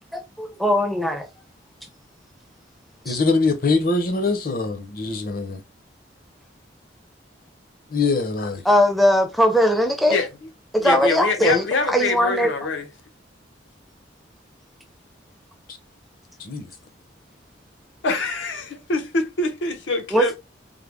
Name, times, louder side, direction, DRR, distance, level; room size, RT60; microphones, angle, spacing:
voice 1, 0.1-1.3 3.1-3.2 8.6-10.2 10.7-12.5 20.1-20.4, equal, ahead, 0.5 m, -20 dB
voice 2, 3.0-5.6 7.9-8.6 16.4-16.7, left 3 dB, 50° left, 0.7 m, -23 dB
voice 3, 10.8-12.9 18.0-20.4, left 3 dB, 80° left, 0.8 m, -24 dB
3.7 x 2.0 x 3.4 m
head